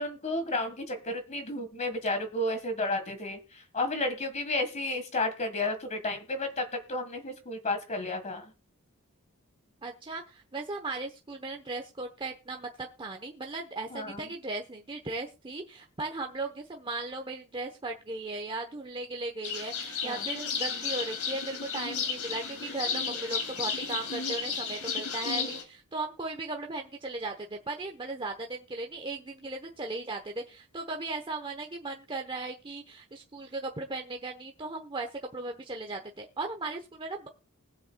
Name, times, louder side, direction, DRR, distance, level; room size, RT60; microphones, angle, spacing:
voice 1, 0.0-3.4 3.7-6.6 6.9-8.4 13.9-14.2 20.0-20.2, left 2 dB, 35° left, 8 dB, 1.6 m, -32 dB
voice 2, 9.8-37.3, right 3 dB, 25° right, 3 dB, 1.0 m, -37 dB
sound 1, 19.4-25.6, left 5 dB, 75° left, 2.7 m, -33 dB
20.5 x 7.7 x 2.3 m, 0.32 s
head